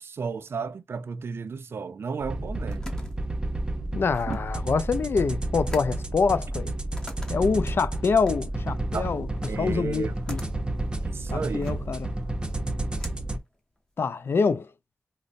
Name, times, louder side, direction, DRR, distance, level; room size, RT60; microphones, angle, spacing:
voice 1, 0.0-2.9 4.3-4.4 8.9-9.1 9.5-10.1 11.0-11.8, right 5 dB, 75° right, 0.4 m, -33 dB
sound 1, 2.2-13.4, right 1 dB, 20° right, 0.6 m, -31 dB
sound 2, 2.3-14.2, left 1 dB, 15° left, 1.0 m, -48 dB
voice 2, 3.9-6.7 7.3-9.3 9.6-10.4 11.3-12.1 14.0-14.7, left 5 dB, 70° left, 0.3 m, -25 dB
5.0 x 2.0 x 2.5 m
cardioid pair, 60°, 4 cm